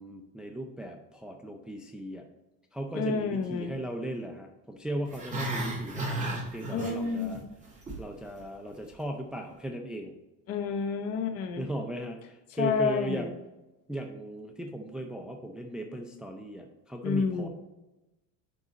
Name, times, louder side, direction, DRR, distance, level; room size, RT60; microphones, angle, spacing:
voice 1, 0.0-2.2 2.7-7.4 8.0-10.1 11.6-13.3 13.9-17.5, right 1 dB, ahead, 2 dB, 0.4 m, -37 dB
voice 2, 2.9-3.7 6.7-7.5 10.5-11.7 12.5-13.3 17.0-17.5, left 5 dB, 45° left, 7 dB, 0.9 m, -29 dB
Growling, 5.0-7.4 7.6-8.0 8.4-8.5, right 2 dB, 20° right, 2.4 m, -34 dB
9.4 x 3.6 x 4.1 m, 1.0 s
cardioid pair, 135°, 35 cm